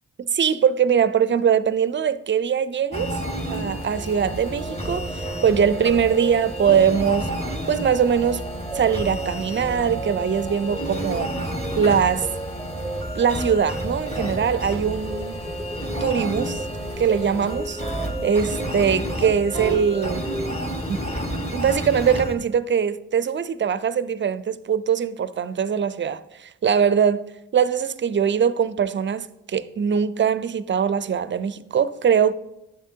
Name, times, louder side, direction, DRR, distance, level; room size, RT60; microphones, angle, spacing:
voice 1, 0.2-3.2 3.5-5.1 5.4-7.3 7.7-8.4 8.7-11.3 11.8-12.3 13.1-15.4 16.0-16.6 17.0-17.8 18.2-20.3 20.9-21.1 21.5-27.2 27.5-32.3, right 7 dB, 35° right, 0.4 m, -22 dB
sound 1, 2.9-22.4, equal, 20° left, 1.6 m, -31 dB
sound 2, 4.6-21.2, right 2 dB, ahead, 0.7 m, -35 dB
10.5 x 7.4 x 2.8 m
cardioid pair, 50°, 34 cm